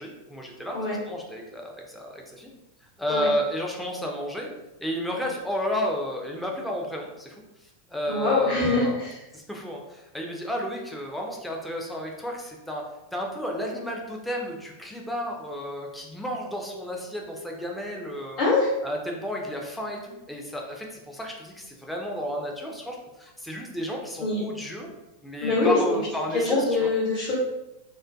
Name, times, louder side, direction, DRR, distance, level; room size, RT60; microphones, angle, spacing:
voice 1, 0.0-0.8 1.1-2.5 3.0-4.5 4.8-7.4 7.9-9.0 9.3-12.8 13.1-18.4 18.8-24.9 25.2-26.9, equal, 5° left, -1 dB, 0.5 m, -32 dB
voice 2, 8.1-9.2 18.4-18.7 24.2-24.4 25.4-25.8 26.3-27.3, left 3 dB, 40° left, -8 dB, 0.9 m, -23 dB
2.4 x 2.2 x 2.5 m, 0.96 s
figure-of-eight pair, 90°, 0 cm